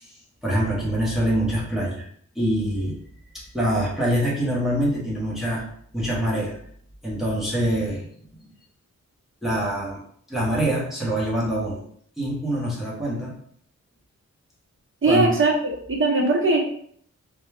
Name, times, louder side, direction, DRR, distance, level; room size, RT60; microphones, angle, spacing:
voice 1, 0.0-2.0 2.3-3.0 3.3-5.7 5.9-6.6 7.0-8.1 8.4-8.5 9.4-10.0 10.3-11.8 12.2-13.3 15.1-15.4, right 1 dB, ahead, -6 dB, 1.0 m, -25 dB
voice 2, 15.0-16.6, right 2 dB, 45° right, -2 dB, 0.9 m, -20 dB
3.8 x 2.3 x 3.3 m, 0.62 s
wide cardioid pair, 155°, 30 cm